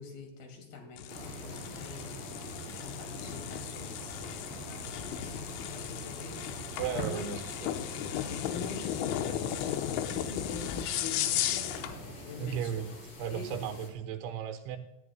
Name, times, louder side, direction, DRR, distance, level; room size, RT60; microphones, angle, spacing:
voice 1, 0.0-2.1 2.7-7.4 8.1-13.0 13.3-13.8, left 5 dB, 55° left, 4 dB, 3.7 m, -45 dB
sound 1, 1.0-12.0, left 11 dB, 85° left, 3.2 m, -36 dB
sound 2, 1.1-13.9, equal, 35° left, 3.2 m, -43 dB
voice 2, 6.8-7.7 12.4-12.9 13.2-14.8, right 9 dB, 80° right, 7 dB, 3.3 m, -35 dB
18.0 x 13.5 x 2.2 m, 0.81 s
omnidirectional pair, 5.5 m